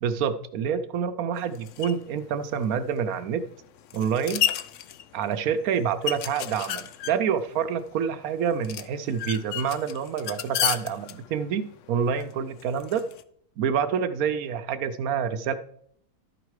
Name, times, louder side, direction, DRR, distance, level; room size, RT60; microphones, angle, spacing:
voice 1, 0.0-3.4 3.9-4.4 5.1-13.0 13.6-15.5, right 7 dB, 70° right, 11 dB, 1.1 m, -27 dB
sound 1, 1.4-13.2, left 11 dB, 70° left, 0.8 m, -34 dB
12.5 x 5.1 x 4.7 m, 0.65 s
omnidirectional pair, 1.6 m